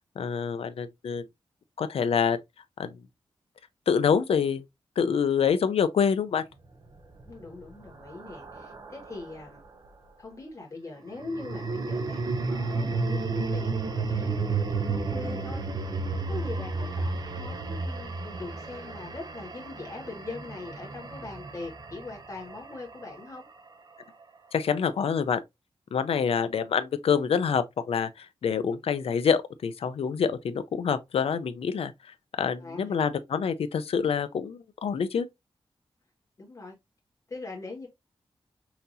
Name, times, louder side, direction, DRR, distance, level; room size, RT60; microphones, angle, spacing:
voice 1, 0.2-1.2 1.8-2.4 2.8-2.9 3.9-4.6 5.0-6.4 24.5-25.4 25.9-31.9 32.4-35.3, left 7 dB, 85° left, 0.6 m, -26 dB
sound 1, 7.0-9.5 11.1-23.4, right 3 dB, 45° right, 0.7 m, -32 dB
voice 2, 7.2-9.6 10.2-16.0 16.3-23.5 32.6-33.0 36.4-36.8 37.3-37.9, left 3 dB, 30° left, 1.7 m, -41 dB
5.7 x 2.8 x 2.6 m
wide cardioid pair, 170°, 10 cm